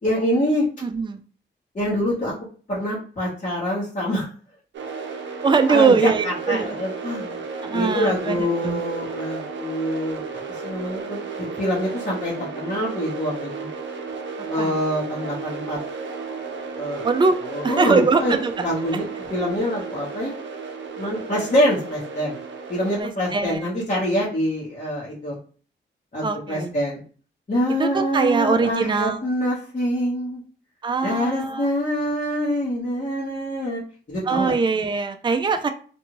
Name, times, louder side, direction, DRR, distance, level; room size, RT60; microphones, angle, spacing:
voice 1, 0.0-0.7 1.7-2.3 2.7-4.3 5.7-5.9 6.2-7.4 7.7-13.7 14.5-15.8 16.8-17.1 17.5-18.3 18.6-20.3 21.0-22.4 22.7-25.4 26.1-27.0 27.5-30.4 31.0-33.8 34.1-34.5, equal, 40° left, -8 dB, 1.2 m, -25 dB
voice 2, 0.8-1.2 5.4-6.8 7.6-8.8 14.6-14.8 17.0-17.4 17.6-18.5 23.0-23.7 26.2-26.7 27.8-29.3 30.8-31.7 34.3-35.7, right 4 dB, 25° right, 7 dB, 0.4 m, -22 dB
sound 1, 4.7-23.0, right 4 dB, 70° right, 0.6 m, -33 dB
2.6 x 2.4 x 3.0 m, 0.41 s
cardioid pair, 55°, 20 cm